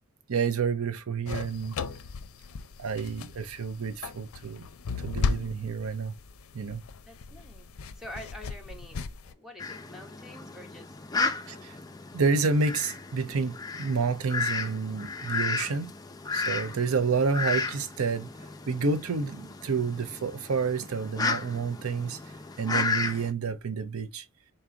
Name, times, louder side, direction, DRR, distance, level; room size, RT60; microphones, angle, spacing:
voice 1, 0.3-1.8 2.8-4.7 5.0-6.2 6.5-6.8 11.5-11.8 12.1-15.9 16.3-18.3 18.7-22.2 22.6-24.3, right 5 dB, 85° right, 0.6 m, -29 dB
sound 1, 1.3-9.3, left 4 dB, 75° left, 0.5 m, -36 dB
voice 2, 7.0-7.7 7.9-9.0 9.2-11.0, left 1 dB, ahead, 1.0 m, -46 dB
Fowl, 9.6-23.3, left 4 dB, 20° left, 0.4 m, -34 dB
3.9 x 3.8 x 2.7 m
head